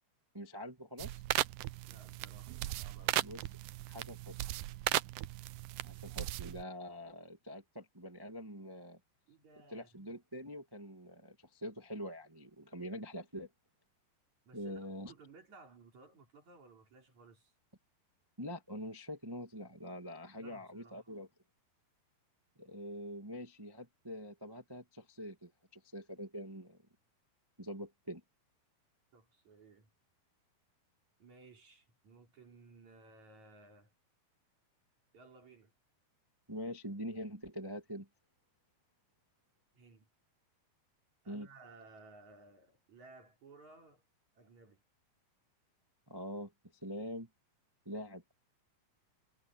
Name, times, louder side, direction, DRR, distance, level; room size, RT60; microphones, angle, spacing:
voice 1, 0.3-1.2 3.2-3.4 3.9-4.4 5.8-9.0 9.7-13.5 14.5-15.1 18.4-21.3 22.6-26.8 27.6-28.2 36.5-38.1 41.2-41.5 46.1-46.5 46.8-47.3 47.8-48.3, equal, 15° right, 0.9 m, -44 dB
sound 1, 1.0-6.6, right 17 dB, 85° right, 1.8 m, -37 dB
voice 2, 1.9-3.2 9.3-9.9 14.4-17.5 20.4-21.1 29.1-29.9 31.2-33.9 35.1-35.7 39.7-40.1 41.2-44.0 44.3-44.8, right 3 dB, 50° right, 5.0 m, -58 dB
omnidirectional pair, 4.5 m